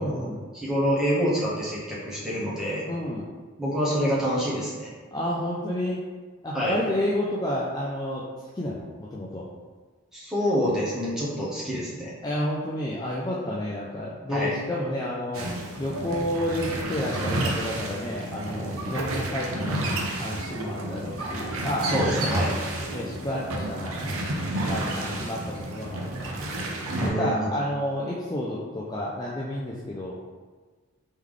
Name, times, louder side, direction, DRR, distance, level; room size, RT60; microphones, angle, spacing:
voice 1, 0.0-0.4 2.9-3.3 5.1-6.0 6.4-8.2 8.5-9.5 12.2-15.5 15.8-19.8 20.2-21.9 22.9-24.3 24.6-26.6 27.0-30.3, left 1 dB, 20° left, -6 dB, 0.3 m, -30 dB
voice 2, 0.5-2.8 3.6-4.9 6.5-6.8 10.1-12.1 14.3-14.5 21.8-22.6 26.9-27.6, equal, 5° right, -8 dB, 0.9 m, -27 dB
sound 1, 15.3-27.1, right 1 dB, 80° right, 0.6 m, -30 dB
3.4 x 3.1 x 3.6 m, 1.4 s
head